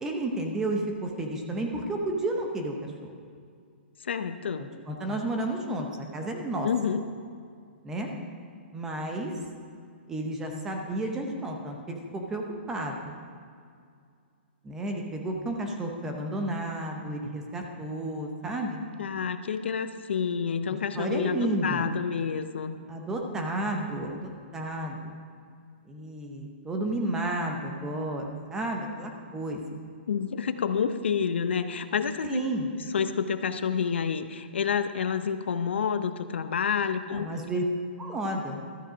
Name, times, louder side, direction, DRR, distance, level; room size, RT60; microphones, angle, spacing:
voice 1, 0.0-3.1 4.6-6.7 7.8-8.1 8.7-9.3 10.1-13.2 14.6-18.8 20.7-21.9 22.9-25.1 25.8-29.6 32.2-32.7 37.1-37.6 38.0-38.6, right 1 dB, 10° right, 2 dB, 0.7 m, -32 dB
voice 2, 4.0-4.7 6.6-7.0 19.0-22.8 30.1-32.4 32.9-37.3, left 7 dB, 80° left, 10 dB, 0.7 m, -29 dB
13.0 x 7.3 x 5.1 m, 2.3 s
hypercardioid pair, 175°, 6 cm